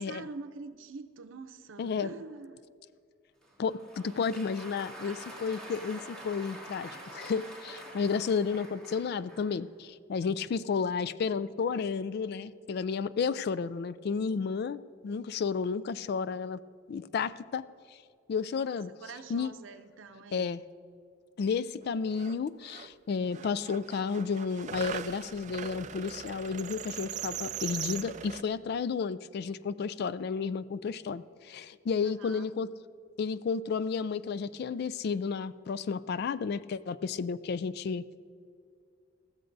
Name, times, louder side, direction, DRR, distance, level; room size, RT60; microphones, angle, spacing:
voice 1, 0.0-2.6 18.7-20.6 32.0-32.5, right 4 dB, 90° right, 9 dB, 0.6 m, -45 dB
voice 2, 1.8-2.1 3.6-16.6 16.9-17.6 18.3-18.9 19.3-19.5 20.3-20.6 21.4-32.7 33.2-38.0, left 5 dB, 55° left, 16 dB, 0.3 m, -32 dB
Applause, 3.4-9.6, right 1 dB, 5° left, 2.2 m, -46 dB
sound 1, 21.8-21.9 22.1-22.9 23.3-28.4, right 9 dB, 40° right, 0.3 m, -40 dB
21.0 x 14.5 x 2.6 m, 2.3 s
head